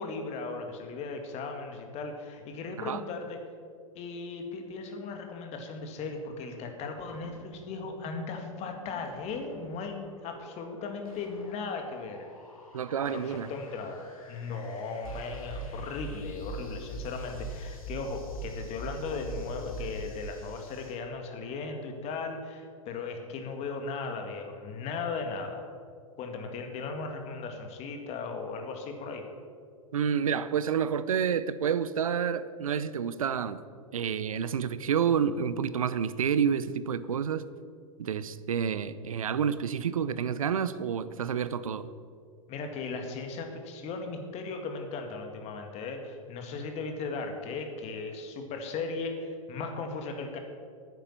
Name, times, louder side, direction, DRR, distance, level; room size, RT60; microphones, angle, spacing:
voice 1, 0.0-3.4 3.9-12.3 13.1-25.7 26.2-29.2 42.5-50.4, left 4 dB, 40° left, 5 dB, 2.0 m, -37 dB
sound 1, 7.1-21.0, left 2 dB, 80° left, 2.5 m, -53 dB
voice 2, 12.7-13.5 29.9-33.6 33.9-37.5 38.0-41.9, right 7 dB, 80° right, 15 dB, 0.6 m, -29 dB
sound 2, 15.0-20.2, right 2 dB, 5° left, 3.3 m, -39 dB
9.5 x 9.2 x 7.4 m, 2.1 s
hypercardioid pair, 100°, 18 cm